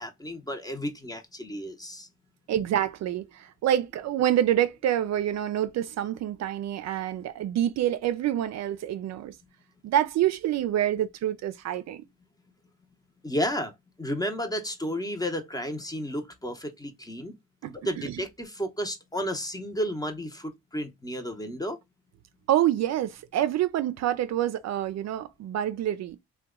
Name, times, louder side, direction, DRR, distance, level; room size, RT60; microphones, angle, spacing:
voice 1, 0.0-2.1 13.2-17.3 17.7-21.8, equal, 10° left, 0.7 m, -32 dB
voice 2, 2.5-9.4 9.8-12.0 17.6-18.1 22.5-26.2, right 11 dB, 60° right, 0.4 m, -27 dB
2.8 x 2.2 x 3.6 m
cardioid pair, 90°, 30 cm